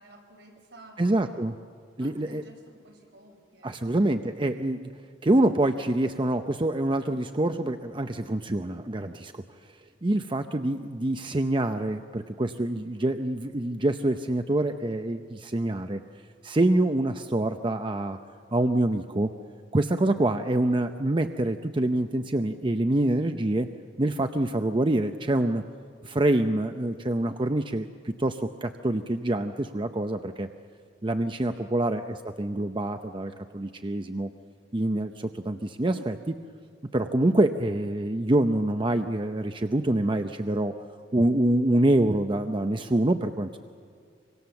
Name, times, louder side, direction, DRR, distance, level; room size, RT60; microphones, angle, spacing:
voice 1, 0.0-1.4 2.0-3.8 31.5-31.8, right 1 dB, 70° right, 2 dB, 5.3 m, -52 dB
voice 2, 1.0-1.5 2.0-2.4 3.6-4.9 5.2-9.4 10.0-16.0 16.4-18.2 18.5-19.3 19.7-23.7 24.0-25.6 26.0-30.5 31.0-34.3 34.7-36.4 36.9-40.7 41.1-43.6, right 1 dB, 25° right, 7 dB, 0.7 m, -26 dB
25.0 x 25.0 x 7.1 m, 2.2 s
head